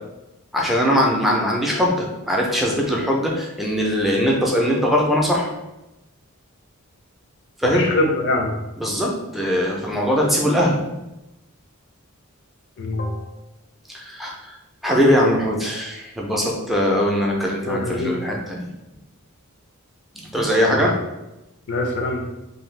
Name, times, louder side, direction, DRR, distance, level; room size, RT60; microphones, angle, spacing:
voice 1, 0.5-5.5 7.6-7.9 8.8-10.8 13.9-14.5 14.8-18.7 20.2-21.0, equal, ahead, -2 dB, 0.4 m, -21 dB
voice 2, 7.7-8.5 12.8-13.4 17.6-18.3 20.6-20.9 21.7-22.2, left 2 dB, 55° left, 2 dB, 0.5 m, -24 dB
2.6 x 2.3 x 3.1 m, 0.98 s
head